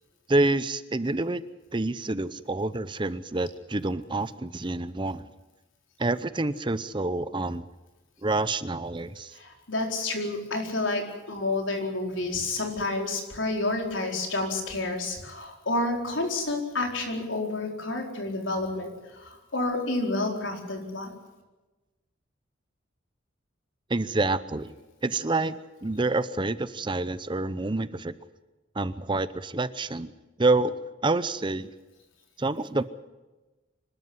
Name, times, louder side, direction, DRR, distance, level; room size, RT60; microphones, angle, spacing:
voice 1, 0.3-1.4 1.7-5.2 6.0-7.7 8.2-9.3 23.9-24.7 25.0-28.1 28.7-30.1 30.4-31.7 32.4-32.8, right 2 dB, 25° right, 14 dB, 0.7 m, -27 dB
voice 2, 9.3-21.1, left 2 dB, 85° left, 2 dB, 4.5 m, -29 dB
25.5 x 12.5 x 9.7 m, 1.1 s
head